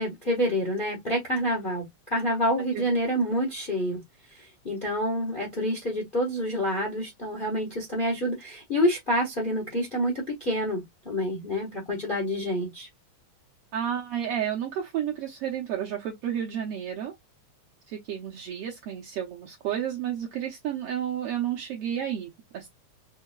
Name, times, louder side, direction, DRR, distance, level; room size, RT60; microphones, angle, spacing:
voice 1, 0.0-4.0 4.4-12.9, equal, 60° left, 0.5 m, -28 dB
voice 2, 13.7-17.1 17.9-22.7, right 9 dB, 70° right, 1.5 m, -31 dB
5.6 x 2.7 x 2.2 m
omnidirectional pair, 3.4 m